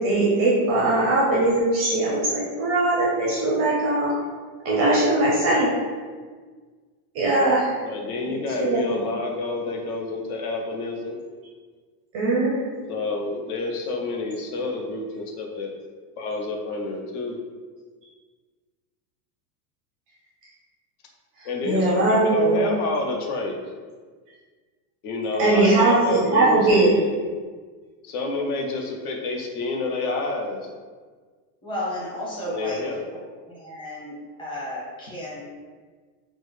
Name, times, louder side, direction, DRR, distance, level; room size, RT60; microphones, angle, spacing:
voice 1, 0.0-4.1 4.6-5.7 7.1-7.7 8.2-9.0 12.1-12.9 21.6-22.7 25.4-26.9, right 2 dB, 30° right, -5 dB, 0.4 m, -20 dB
voice 2, 7.8-11.2 12.9-15.7 16.2-17.4 21.4-23.6 25.0-27.1 28.0-30.6 32.5-33.0, left 3 dB, 65° left, 1 dB, 0.7 m, -29 dB
voice 3, 31.6-32.8 33.1-33.2 33.5-35.5, left 1 dB, 10° left, -7 dB, 0.6 m, -33 dB
3.5 x 2.0 x 3.2 m, 1.5 s
supercardioid pair, 155°, 49 cm